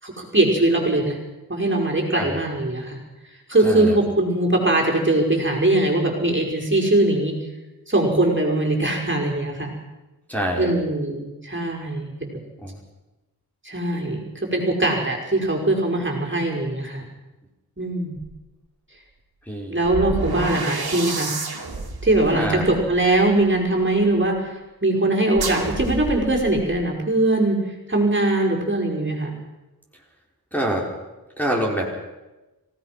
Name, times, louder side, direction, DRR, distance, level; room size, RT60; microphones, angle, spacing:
voice 1, 0.0-1.2 1.5-3.0 3.5-7.4 7.9-9.7 10.6-12.3 13.6-17.0 17.8-18.2 19.7-21.3 22.0-24.6 24.8-27.6 27.9-29.3, right 2 dB, 30° right, -1 dB, 5.3 m, -21 dB
voice 2, 3.6-4.0 10.3-10.8 12.6-12.8 19.5-19.8 22.3-22.7 30.5-30.9 31.4-32.0, equal, 5° left, -2 dB, 5.7 m, -26 dB
sound 1, 18.2-18.3 19.8-23.9 25.3-26.8, right 3 dB, 90° right, 2.8 m, -30 dB
26.5 x 17.5 x 6.0 m, 1.1 s
wide cardioid pair, 45°, 36 cm